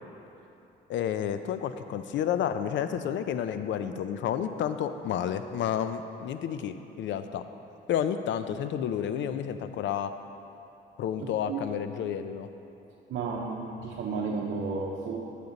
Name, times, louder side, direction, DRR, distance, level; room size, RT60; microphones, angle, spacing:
voice 1, 0.9-7.4 7.9-10.1 11.0-12.5, left 9 dB, 70° left, 10 dB, 0.4 m, -30 dB
voice 2, 11.2-11.6 13.1-15.3, right 4 dB, 70° right, -3 dB, 0.7 m, -33 dB
8.3 x 6.6 x 3.9 m, 2.9 s
cardioid pair, 90°, 20 cm